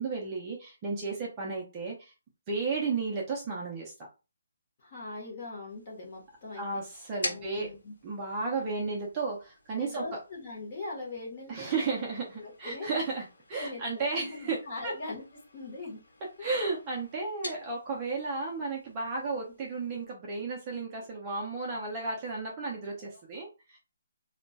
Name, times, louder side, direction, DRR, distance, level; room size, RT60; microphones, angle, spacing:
voice 1, 0.0-2.1 2.5-3.9 6.6-7.7 8.0-10.0 11.5-14.6 14.8-14.9 16.4-23.8, right 4 dB, 15° right, -3 dB, 0.4 m, -33 dB
voice 2, 4.8-6.8 7.2-7.9 9.8-12.0 12.3-12.9 13.5-15.2 15.5-16.0 16.4-16.5 20.7-21.1 23.0-23.2, left 2 dB, 25° left, -3 dB, 0.9 m, -41 dB
sound 1, 5.7-20.0, left 2 dB, 70° left, 1.0 m, -47 dB
2.2 x 2.1 x 3.8 m, 0.30 s
hypercardioid pair, 180°, 0 cm